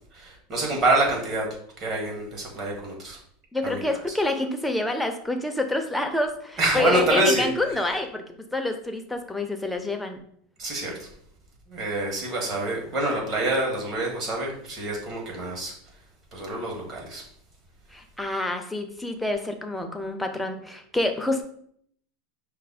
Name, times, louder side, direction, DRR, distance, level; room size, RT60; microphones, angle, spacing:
voice 1, 0.1-1.5 1.8-3.2 3.6-3.8 6.6-7.5 10.6-11.1 11.7-15.7 16.3-17.2, right 2 dB, 40° right, -1 dB, 1.6 m, -26 dB
voice 2, 3.5-8.2 8.5-10.2 17.9-21.4, left 2 dB, 5° left, 5 dB, 0.6 m, -27 dB
5.3 x 2.0 x 4.1 m, 0.65 s
supercardioid pair, 125°, 0 cm